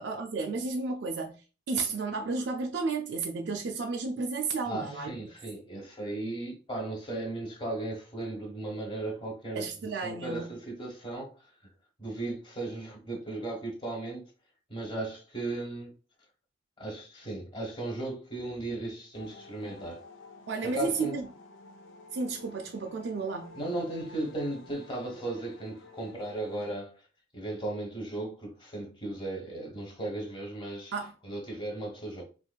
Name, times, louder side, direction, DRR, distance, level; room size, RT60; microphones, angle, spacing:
voice 1, 0.0-5.3 9.5-10.5 20.5-21.3 22.1-23.6 30.9-31.1, right 4 dB, 60° right, 0.3 m, -32 dB
voice 2, 4.6-9.7 10.0-11.4 12.0-14.2 14.7-15.9 16.8-20.0 20.6-21.2 23.5-26.9 27.3-30.9 31.2-32.2, right 2 dB, 25° left, 1.2 m, -36 dB
sound 1, 19.1-26.8, left 3 dB, 80° left, 0.5 m, -52 dB
4.3 x 2.5 x 2.3 m
head